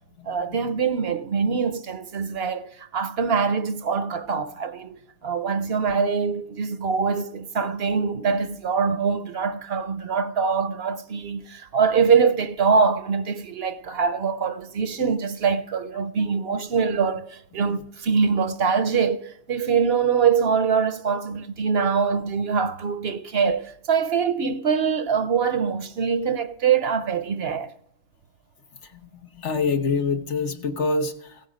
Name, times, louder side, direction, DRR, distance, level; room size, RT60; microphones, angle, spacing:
voice 1, 0.2-27.7, right 6 dB, 60° right, 0.9 m, -24 dB
voice 2, 29.3-31.4, left 4 dB, 75° left, 1.4 m, -25 dB
16.0 x 9.8 x 5.2 m
omnidirectional pair, 1.2 m